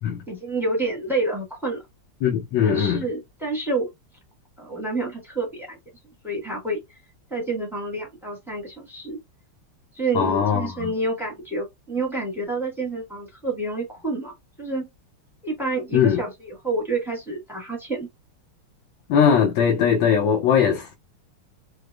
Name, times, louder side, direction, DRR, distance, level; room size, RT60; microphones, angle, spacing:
voice 1, 0.3-1.8 2.6-3.9 4.6-5.8 6.2-6.8 7.3-9.2 9.9-14.9 15.4-18.1, right 2 dB, ahead, 0.6 m, -28 dB
voice 2, 2.2-3.0 10.1-10.9 15.9-16.2 19.1-20.9, left 7 dB, 70° left, 1.3 m, -20 dB
4.8 x 2.0 x 2.2 m
omnidirectional pair, 2.4 m